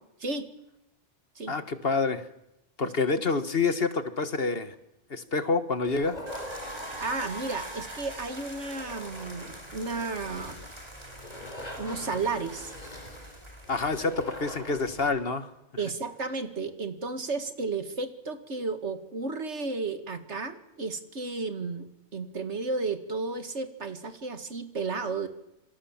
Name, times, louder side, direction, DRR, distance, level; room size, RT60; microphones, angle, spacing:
voice 1, 1.5-2.2 2.8-4.8 5.1-6.2 13.7-15.5, left 4 dB, 55° left, 11 dB, 1.7 m, -27 dB
sound 1, 5.9-15.2, left 1 dB, 35° left, 4.5 m, -44 dB
sound 2, 6.3-14.4, right 1 dB, 25° right, 4.0 m, -44 dB
voice 2, 7.0-10.6 11.8-12.7 14.0-14.1 15.8-25.3, right 3 dB, 70° right, 9 dB, 2.3 m, -33 dB
27.5 x 24.5 x 7.3 m, 0.87 s
omnidirectional pair, 1.2 m